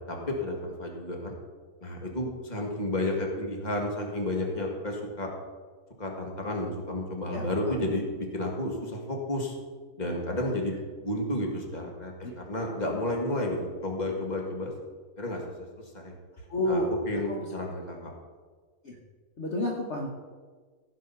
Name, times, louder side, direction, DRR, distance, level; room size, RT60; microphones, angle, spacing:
voice 1, 0.1-1.4 1.8-5.3 6.0-9.5 10.0-10.8 11.0-14.7 15.2-15.7 15.9-16.2 16.7-18.1, left 1 dB, 30° left, 0 dB, 1.9 m, -31 dB
voice 2, 7.3-7.9 10.4-10.6 12.2-12.3 16.5-16.9 17.3-17.4 18.8-19.0 19.4-20.1, left 1 dB, 50° left, -1 dB, 1.4 m, -30 dB
16.0 x 5.6 x 5.7 m, 1.5 s
omnidirectional pair, 1.6 m